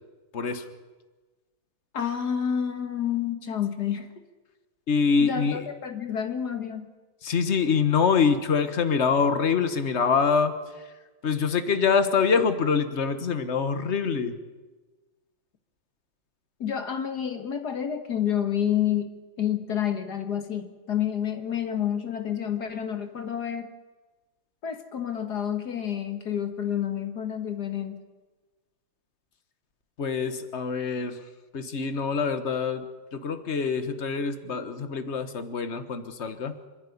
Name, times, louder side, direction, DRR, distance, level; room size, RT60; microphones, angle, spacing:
voice 1, 0.3-0.7 4.9-5.6 7.2-10.5 11.2-14.3 30.0-31.2 31.5-36.6, left 5 dB, 35° left, 10 dB, 1.4 m, -25 dB
voice 2, 1.9-4.1 5.2-6.9 16.6-19.1 19.4-23.7 24.6-28.0, left 9 dB, 55° left, 7 dB, 2.0 m, -29 dB
27.0 x 11.0 x 10.0 m, 1.3 s
omnidirectional pair, 2.2 m